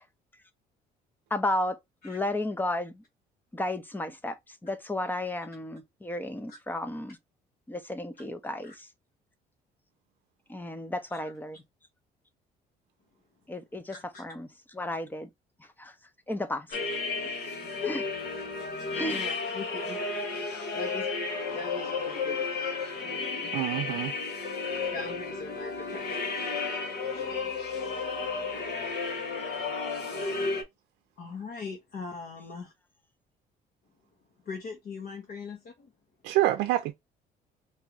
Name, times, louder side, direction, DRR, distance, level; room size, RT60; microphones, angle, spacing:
voice 1, 1.3-1.8 2.0-3.0 3.5-7.2 7.7-8.9 10.5-11.6 13.5-14.5 14.7-15.3 15.6-15.9 16.3-16.7 17.9-18.0 18.9-19.2, left 1 dB, 10° left, 0.6 m, -33 dB
voice 2, 13.9-14.2 16.7-16.8 17.8-18.0 19.1-20.0 20.7-21.1 21.5-22.5 23.0-23.6 24.9-26.2 27.1-27.4 31.2-32.7 34.4-35.9, left 4 dB, 55° left, 1.1 m, -40 dB
sound 1, 16.7-30.6, left 4 dB, 80° left, 1.3 m, -33 dB
voice 3, 23.5-24.1 36.2-36.9, right 15 dB, 85° right, 0.5 m, -26 dB
3.0 x 2.7 x 3.5 m
cardioid pair, 110°, 17 cm